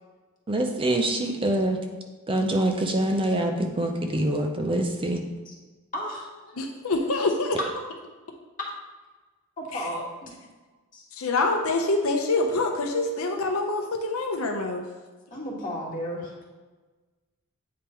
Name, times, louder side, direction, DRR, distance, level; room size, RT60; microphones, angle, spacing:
voice 1, 0.5-1.8 2.3-5.2, right 1 dB, 25° right, 4 dB, 0.5 m, -25 dB
voice 2, 5.9-6.6 7.6-7.7 9.6-10.3 10.9-11.0 15.3-16.3, equal, 40° left, -4 dB, 1.7 m, -33 dB
voice 3, 6.6-7.6 9.7-9.8 11.1-14.9, left 2 dB, 70° left, 2 dB, 0.7 m, -25 dB
8.5 x 3.6 x 4.4 m, 1.3 s
head